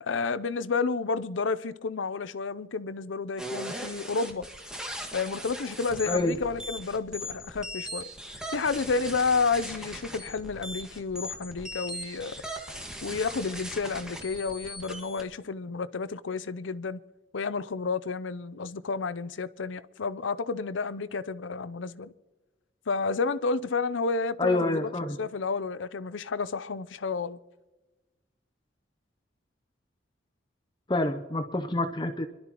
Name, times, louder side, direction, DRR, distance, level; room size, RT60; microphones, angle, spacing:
voice 1, 0.0-4.5 5.1-8.1 8.5-12.4 13.0-17.0 17.3-22.1 22.9-24.9 25.2-27.4, left 4 dB, 85° left, 0.6 m, -30 dB
sound 1, 3.4-15.2, equal, 5° right, 1.7 m, -39 dB
voice 2, 24.4-25.2 30.9-32.3, left 2 dB, 25° left, 0.6 m, -27 dB
26.0 x 12.0 x 3.0 m
head